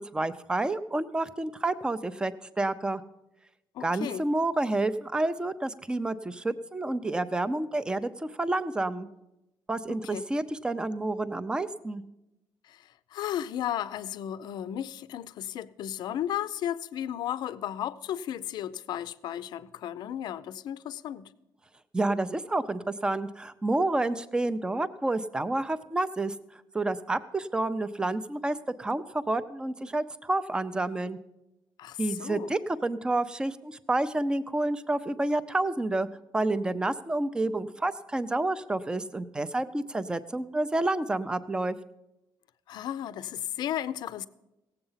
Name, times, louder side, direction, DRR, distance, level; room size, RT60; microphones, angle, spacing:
voice 1, 0.0-3.0 3.8-8.1 8.4-9.1 9.7-12.0 21.9-26.3 26.7-31.2 32.0-36.1 36.3-41.8, right 2 dB, 10° right, 0.5 m, -29 dB
voice 2, 3.7-4.3 9.9-10.3 12.7-12.8 13.1-21.3 31.8-32.5 42.7-44.3, left 11 dB, 65° left, 0.5 m, -34 dB
17.5 x 7.9 x 5.6 m
cardioid pair, 155°, 8 cm